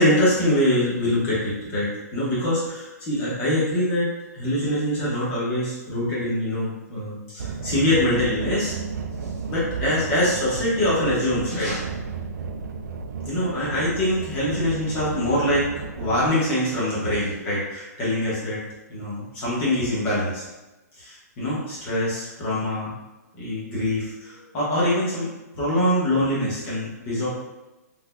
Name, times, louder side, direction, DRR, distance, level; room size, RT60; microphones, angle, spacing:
voice 1, 0.0-8.7 9.5-11.9 13.3-18.6 18.9-20.4 21.0-22.9 23.4-25.3 25.6-27.3, left 1 dB, 20° left, -8 dB, 1.0 m, -24 dB
sound 1, 7.4-16.3, right 5 dB, 85° right, 0.4 m, -33 dB
4.0 x 2.7 x 2.2 m, 1.1 s
hypercardioid pair, 165°, 9 cm